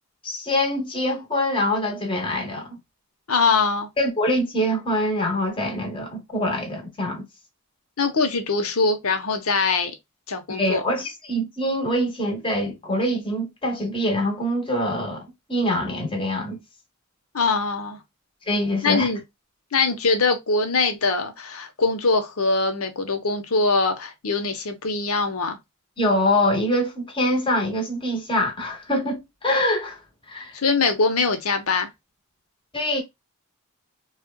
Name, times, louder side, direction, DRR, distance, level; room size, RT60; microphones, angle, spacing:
voice 1, 0.2-2.8 4.0-7.2 10.5-16.6 18.5-19.1 26.0-30.0 30.3-30.5 32.7-33.0, left 1 dB, 25° left, 1.3 m, -24 dB
voice 2, 3.3-3.9 8.0-9.9 10.3-10.8 17.3-18.0 18.8-19.2 19.7-25.6 30.5-31.9, left 4 dB, 85° left, 0.9 m, -22 dB
4.2 x 2.4 x 2.2 m
head